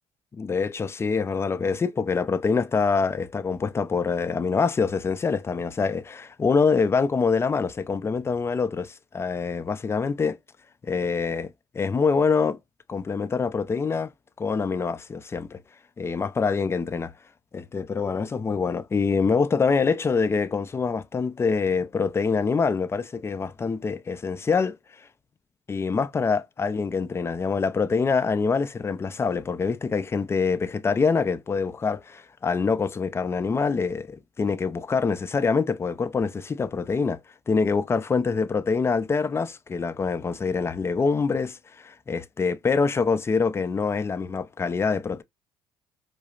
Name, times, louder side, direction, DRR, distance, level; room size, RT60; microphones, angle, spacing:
voice 1, 0.3-10.4 10.8-12.6 12.9-14.1 14.4-15.6 16.0-17.1 17.5-24.8 25.7-37.2 37.5-45.2, left 5 dB, 25° left, 0.4 m, -25 dB
4.8 x 2.0 x 2.3 m
supercardioid pair, 85°, 11 cm